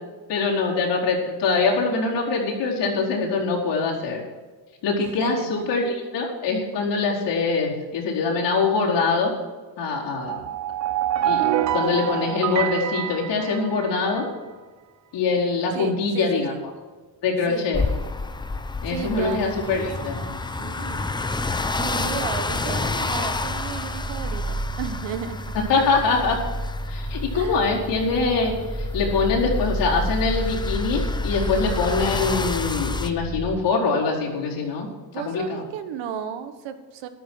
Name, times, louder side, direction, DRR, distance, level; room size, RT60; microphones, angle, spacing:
voice 1, 0.3-4.2 4.8-9.3 9.8-10.4 11.2-11.5 11.7-14.3 15.1-16.5 17.2-17.8 18.8-20.1 21.9-22.2 25.7-26.4 26.9-34.9 35.1-35.6, left 4 dB, 65° left, -3 dB, 4.5 m, -23 dB
voice 2, 5.0-5.7 15.7-16.6 17.5-17.8 18.8-21.1 21.8-25.4 27.3-27.6 35.1-37.1, right 8 dB, 75° right, 9 dB, 1.5 m, -34 dB
sound 1, 10.2-14.2, right 11 dB, 40° right, 0.6 m, -26 dB
sound 2, 17.7-33.1, left 3 dB, 10° left, 0.6 m, -30 dB
sound 3, 18.2-19.5 19.7-33.6, equal, 10° right, 1.2 m, -32 dB
14.0 x 12.0 x 4.6 m, 1.4 s
cardioid pair, 145°, 46 cm